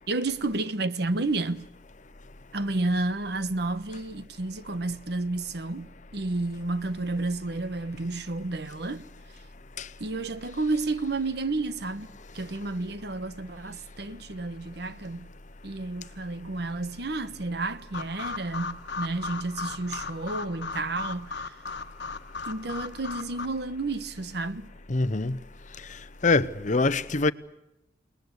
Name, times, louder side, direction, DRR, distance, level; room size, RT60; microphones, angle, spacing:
voice 1, 0.1-1.7 2.5-9.0 10.0-12.1 12.3-15.3 15.6-21.6 22.5-24.7, right 2 dB, 65° right, 1.2 m, -31 dB
sound 1, 17.9-23.5, left 4 dB, 70° left, 1.4 m, -37 dB
voice 2, 24.9-25.4 26.2-27.3, left 3 dB, 45° left, 0.9 m, -24 dB
28.5 x 20.5 x 8.1 m
head